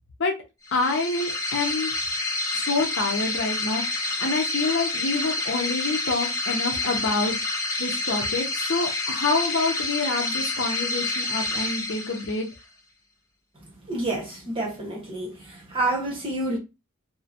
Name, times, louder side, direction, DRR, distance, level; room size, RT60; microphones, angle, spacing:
sound 1, 0.6-12.6, left 2 dB, 15° left, 0.5 m, -28 dB
voice 1, 0.7-1.9 2.5-7.4 7.8-12.5, left 3 dB, 55° left, 0.7 m, -27 dB
voice 2, 13.9-16.6, right 2 dB, 25° right, 1.0 m, -28 dB
2.8 x 2.1 x 2.5 m
head